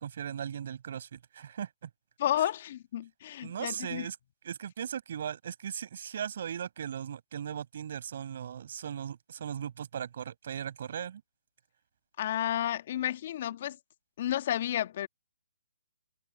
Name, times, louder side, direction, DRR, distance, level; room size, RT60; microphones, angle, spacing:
voice 1, 0.0-1.9 3.4-4.2 4.4-11.2, right 8 dB, 50° right, 5.1 m, -38 dB
voice 2, 2.2-4.1 12.2-13.8 14.2-15.1, left 11 dB, 45° left, 1.6 m, -31 dB
hypercardioid pair, 150°, 0 cm